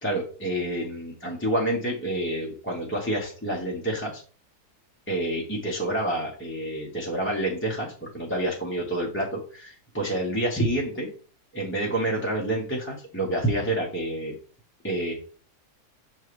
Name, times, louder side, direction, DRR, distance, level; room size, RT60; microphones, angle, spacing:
voice 1, 0.0-4.2 5.1-11.1 11.5-14.3 14.8-15.1, right 1 dB, 10° left, -3 dB, 0.9 m, -28 dB
6.5 x 4.6 x 3.2 m, 0.39 s
omnidirectional pair, 1.7 m